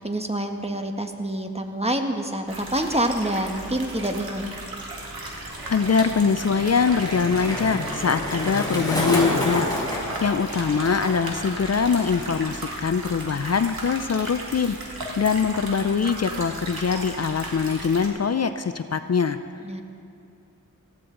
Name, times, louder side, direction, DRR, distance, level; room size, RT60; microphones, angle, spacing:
voice 1, 0.0-4.5 19.6-19.8, right 1 dB, 15° right, 4 dB, 1.4 m, -27 dB
sound 1, 2.5-18.1, right 2 dB, 85° right, 1.9 m, -36 dB
Skateboard, 4.9-12.5 12.8-13.3, left 1 dB, 10° left, 4.7 m, -30 dB
voice 2, 5.7-14.8 15.2-19.4, left 5 dB, 45° left, 10 dB, 0.6 m, -23 dB
19.0 x 15.0 x 3.9 m, 2.5 s
cardioid pair, 50°, 35 cm